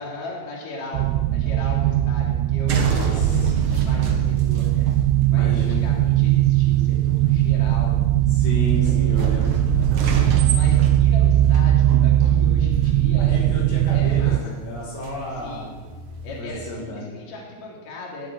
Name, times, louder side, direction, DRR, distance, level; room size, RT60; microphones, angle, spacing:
voice 1, 0.0-5.0 5.3-8.0 8.7-9.4 10.5-14.4 15.3-15.7 16.2-18.3, left 2 dB, 45° left, -3 dB, 4.7 m, -38 dB
sound 1, 0.9-14.4, right 13 dB, 85° right, 3.0 m, -19 dB
sound 2, 2.7-16.4, right 3 dB, 70° right, 1.5 m, -31 dB
voice 2, 2.8-3.5 5.3-5.9 8.3-9.6 13.3-15.7 16.4-17.1, left 1 dB, 65° left, -4 dB, 4.6 m, -32 dB
20.0 x 8.5 x 7.6 m, 1.3 s
omnidirectional pair, 5.5 m